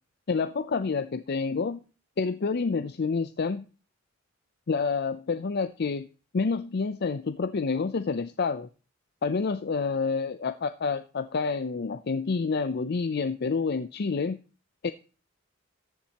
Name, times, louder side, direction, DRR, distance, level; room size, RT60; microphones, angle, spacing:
voice 1, 0.3-1.8 2.2-3.6 4.7-6.1 6.3-8.7 9.2-14.4 14.8-14.9, left 4 dB, 55° left, 10 dB, 0.5 m, -28 dB
14.0 x 7.3 x 2.9 m, 0.35 s
head